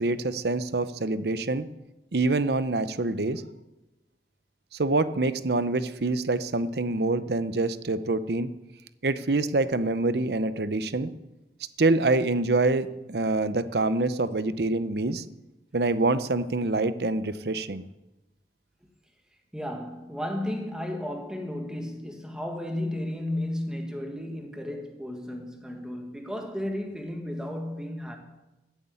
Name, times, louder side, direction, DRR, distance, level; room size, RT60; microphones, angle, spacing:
voice 1, 0.0-1.7 2.1-3.4 4.8-8.5 9.0-11.1 11.8-15.2 15.7-17.8, right 2 dB, 70° right, 0.8 m, -26 dB
voice 2, 19.5-28.2, left 1 dB, 5° right, 1.8 m, -33 dB
14.5 x 8.2 x 8.4 m
head